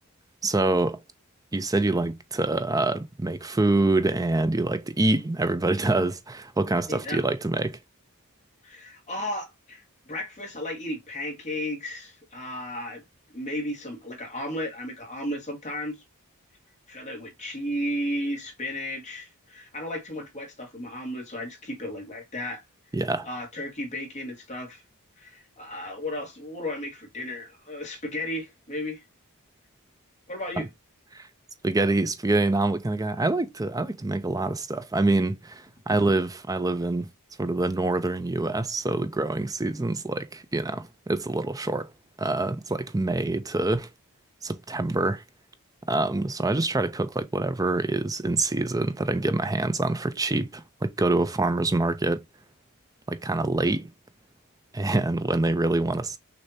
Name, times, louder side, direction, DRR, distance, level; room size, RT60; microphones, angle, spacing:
voice 1, 0.4-1.0 1.5-7.8 22.9-23.3 31.1-31.3 31.6-37.1 37.4-41.9 42.2-43.9 44.4-45.2 45.9-52.2 53.1-53.9 54.7-56.2, right 2 dB, 15° right, 0.6 m, -25 dB
voice 2, 6.9-7.2 8.6-13.0 13.3-16.0 16.9-22.6 23.2-24.8 25.2-29.0 30.3-30.7 39.7-39.8, left 1 dB, 30° left, 1.9 m, -34 dB
6.4 x 2.8 x 2.7 m
head